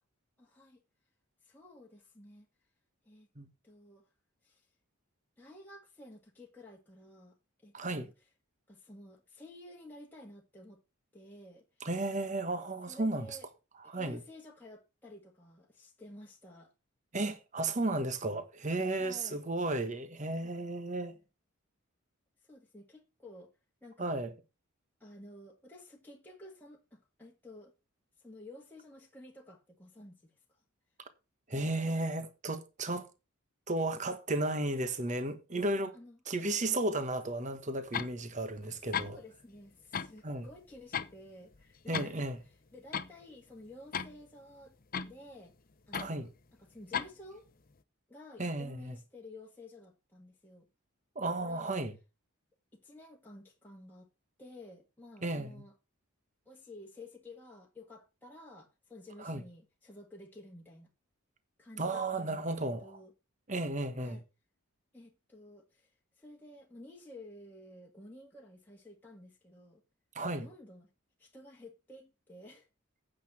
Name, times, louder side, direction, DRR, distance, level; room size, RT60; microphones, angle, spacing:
voice 1, 0.4-0.8 1.4-2.5 3.0-3.3 3.6-4.1 4.4-4.7 5.4-7.4 7.6-8.1 8.7-10.8 11.1-11.9 12.9-13.5 13.8-16.7 18.9-19.4 20.4-20.5 22.4-23.5 23.8-24.2 25.0-27.7 28.2-30.3 35.1-35.2 35.7-36.6 38.6-44.8 45.1-45.5 45.9-46.3 46.6-47.5 48.1-50.7 51.4-51.8 52.7-54.1 54.4-55.7 56.5-60.9 61.6-63.1 64.0-64.2 64.9-69.8 70.3-70.9 71.2-72.7, left 1 dB, 10° left, 1.7 m, -53 dB
voice 2, 7.7-8.1 11.8-13.3 13.9-14.2 17.1-21.1 24.0-24.3 31.5-33.1 33.7-35.9 36.3-39.2 40.2-40.5 41.9-42.4 45.9-46.3 48.4-48.9 51.1-51.9 55.2-55.6 59.2-59.4 61.8-63.0 63.5-64.2 70.1-70.5, right 2 dB, 35° right, 1.3 m, -34 dB
sound 1, 37.9-38.1 38.6-38.7 38.9-39.1 39.9-40.2 40.5-41.2 41.5-42.1 42.4-42.5 42.9-43.1 43.9-44.2 44.9-45.1 45.9-46.1 46.9-47.1, left 7 dB, 40° left, 0.7 m, -35 dB
9.2 x 6.5 x 5.9 m
head